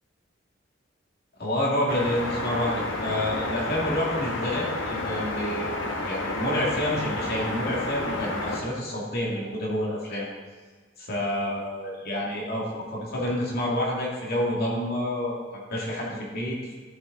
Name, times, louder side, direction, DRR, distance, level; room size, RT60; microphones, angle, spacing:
voice 1, 1.4-5.7 6.0-10.3 11.0-16.8, left 1 dB, 55° left, -4 dB, 2.4 m, -28 dB
sound 1, 1.9-8.6, left 2 dB, 80° left, 1.4 m, -30 dB
13.0 x 6.6 x 4.0 m, 1.5 s
head